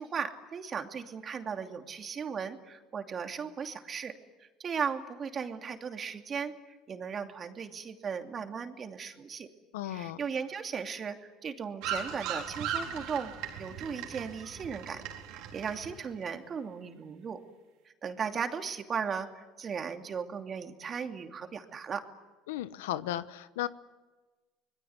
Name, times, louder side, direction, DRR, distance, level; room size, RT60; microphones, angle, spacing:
voice 1, 0.0-4.2 4.6-6.5 6.9-9.5 9.9-13.3 13.6-15.0 15.3-17.4 18.0-22.0, right 6 dB, 40° right, 5 dB, 2.8 m, -36 dB
voice 2, 9.7-10.2 22.5-23.7, left 13 dB, 85° left, 14 dB, 1.0 m, -35 dB
sound 1, 11.8-16.2, right 8 dB, 70° right, 4.1 m, -38 dB
26.0 x 21.0 x 9.7 m, 1.2 s
supercardioid pair, 85°, 0 cm